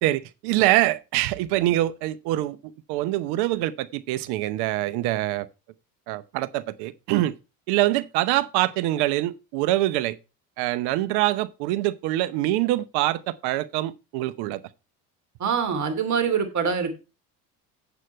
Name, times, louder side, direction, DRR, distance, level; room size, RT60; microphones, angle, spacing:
voice 1, 0.0-2.6 2.9-5.5 6.1-7.3 7.7-10.2 10.6-14.6, right 16 dB, 80° right, 0.8 m, -24 dB
voice 2, 15.4-16.9, right 6 dB, 45° right, 2.8 m, -24 dB
8.2 x 7.9 x 4.5 m
supercardioid pair, 75°, 39 cm